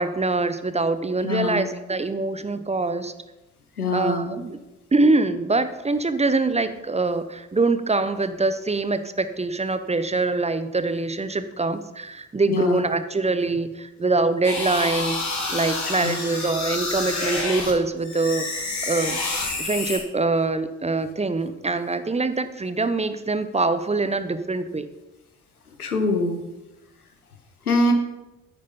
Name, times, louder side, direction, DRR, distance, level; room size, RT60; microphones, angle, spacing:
voice 1, 0.0-3.1 3.9-4.6 4.9-15.2 15.5-18.5 18.8-19.2 19.6-24.9, right 3 dB, 15° right, 11 dB, 0.8 m, -24 dB
voice 2, 1.2-1.7 3.8-4.3 12.5-12.8 15.5-15.6 16.0-16.2 25.8-26.4 27.7-27.9, left 2 dB, 90° left, 6 dB, 1.0 m, -23 dB
sound 1, 14.4-17.7 18.0-20.0, left 3 dB, 40° left, 3.4 m, -28 dB
9.3 x 8.9 x 5.5 m, 1.0 s
figure-of-eight pair, 45°, 43 cm